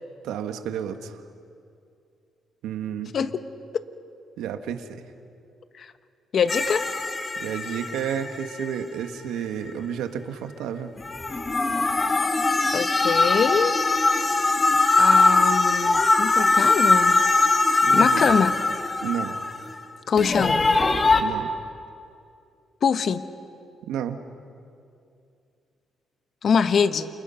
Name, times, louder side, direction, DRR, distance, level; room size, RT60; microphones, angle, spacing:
voice 1, 0.2-1.1 2.6-3.1 4.4-5.0 7.4-10.9 17.8-18.3 19.0-19.4 21.2-21.5 23.9-24.2, right 8 dB, 90° right, 7 dB, 1.6 m, -31 dB
voice 2, 6.3-6.8 12.7-13.7 15.0-17.2 17.9-18.5 20.1-20.6 22.8-23.2 26.4-27.1, left 6 dB, 55° left, 11 dB, 1.2 m, -23 dB
sound 1, 6.5-8.7 11.0-19.8 20.2-21.2, left 3 dB, 25° left, 1.8 m, -21 dB
29.5 x 28.5 x 5.8 m, 2.5 s
cardioid pair, 90°, 0 cm